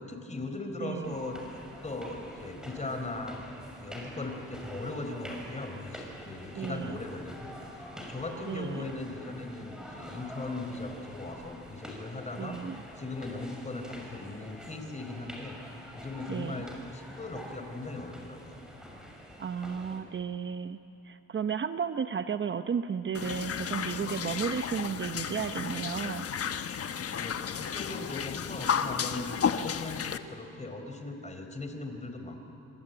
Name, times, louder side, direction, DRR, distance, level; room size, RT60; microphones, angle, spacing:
voice 1, 0.0-3.4 3.8-12.6 13.0-15.6 15.9-18.6 27.2-32.5, left 2 dB, 25° left, 5 dB, 4.2 m, -39 dB
voice 2, 0.8-1.1 6.5-7.0 8.5-8.8 12.4-12.8 16.3-16.6 19.4-20.8 21.0-26.3, right 7 dB, 40° right, 10 dB, 0.8 m, -33 dB
sound 1, 1.0-20.0, equal, ahead, 6.2 m, -46 dB
sound 2, 23.1-30.2, left 7 dB, 50° left, 1.2 m, -33 dB
26.0 x 23.5 x 9.1 m, 2.7 s
cardioid pair, 90°, 30 cm